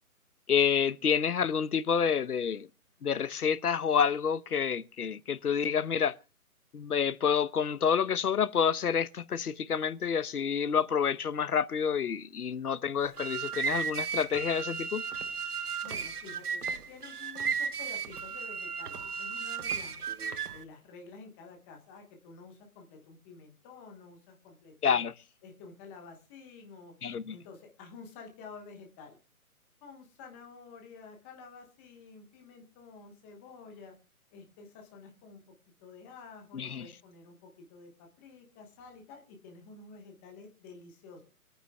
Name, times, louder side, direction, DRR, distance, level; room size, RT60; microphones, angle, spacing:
voice 1, 0.5-2.7 3.0-6.2 6.7-15.0 24.8-25.1 27.0-27.4 36.5-36.9, left 7 dB, 80° left, 0.9 m, -28 dB
sound 1, 13.0-20.6, right 6 dB, 85° right, 1.1 m, -35 dB
voice 2, 15.8-20.0 20.5-25.0 25.4-26.9 27.3-29.2 29.8-33.9 34.3-35.4 35.8-41.2, left 4 dB, 10° left, 1.1 m, -50 dB
26.0 x 9.1 x 2.2 m
hypercardioid pair, 160°, 44 cm